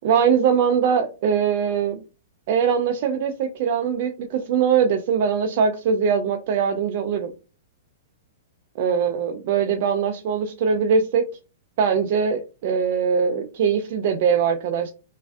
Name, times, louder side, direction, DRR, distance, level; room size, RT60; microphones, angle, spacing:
voice 1, 0.0-2.0 2.5-7.3 8.8-11.3 11.8-14.9, right 7 dB, 55° right, 6 dB, 0.4 m, -21 dB
3.1 x 2.5 x 2.3 m, 0.31 s
hypercardioid pair, 135°, 0 cm